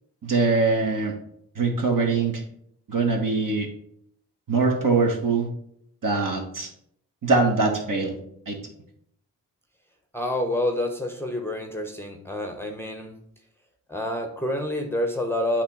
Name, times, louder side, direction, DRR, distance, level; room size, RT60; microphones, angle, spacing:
voice 1, 0.2-1.1 1.5-2.4 2.9-3.7 4.5-5.5 6.0-6.7 7.2-8.2 8.5-8.6, right 3 dB, 45° right, 2 dB, 1.5 m, -22 dB
voice 2, 10.1-13.2 13.9-15.6, left 1 dB, 5° left, 3 dB, 1.0 m, -28 dB
8.2 x 3.1 x 4.7 m, 0.71 s
hypercardioid pair, 40°, 47 cm